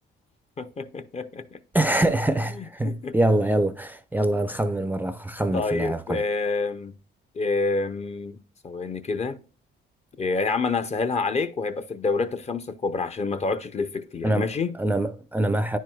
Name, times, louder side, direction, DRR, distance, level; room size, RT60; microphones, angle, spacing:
voice 1, 0.6-1.6 2.5-3.2 5.5-7.0 7.3-8.4 8.6-9.4 10.2-14.8, left 4 dB, 35° left, 0.6 m, -28 dB
voice 2, 1.7-6.2 14.2-14.5 14.7-15.8, right 1 dB, 10° right, 0.4 m, -24 dB
9.9 x 4.6 x 2.2 m
cardioid pair, 90°, 20 cm